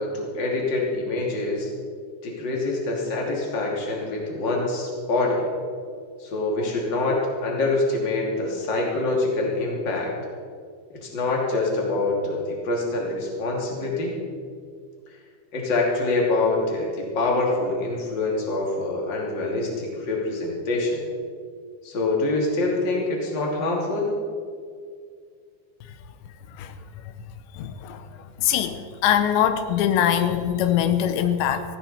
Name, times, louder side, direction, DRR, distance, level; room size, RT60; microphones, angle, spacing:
voice 1, 0.0-1.7 2.2-5.5 6.2-10.2 10.9-14.1 15.5-21.1 21.8-24.2, left 2 dB, 30° left, -1 dB, 2.8 m, -25 dB
voice 2, 27.6-28.0 28.4-28.8 29.0-31.6, left 10 dB, 90° left, 9 dB, 3.1 m, -22 dB
17.5 x 15.0 x 4.4 m, 2.2 s
omnidirectional pair, 5.0 m